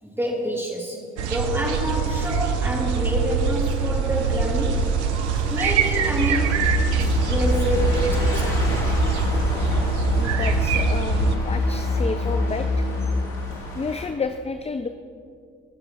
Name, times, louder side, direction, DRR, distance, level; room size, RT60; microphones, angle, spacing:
voice 1, 0.0-4.9 5.5-6.7 7.2-9.0, equal, 5° right, -2 dB, 2.9 m, -28 dB
sound 1, 1.2-11.4, right 7 dB, 85° right, 0.6 m, -24 dB
sound 2, 1.6-14.1, left 1 dB, 75° left, 2.2 m, -33 dB
voice 2, 5.1-5.6 10.2-12.9 13.7-14.9, left 4 dB, 20° left, 8 dB, 0.5 m, -31 dB
sound 3, 6.1-13.1, left 2 dB, 55° left, 2.3 m, -25 dB
20.0 x 6.8 x 4.3 m, 2.3 s
figure-of-eight pair, 40°, 33 cm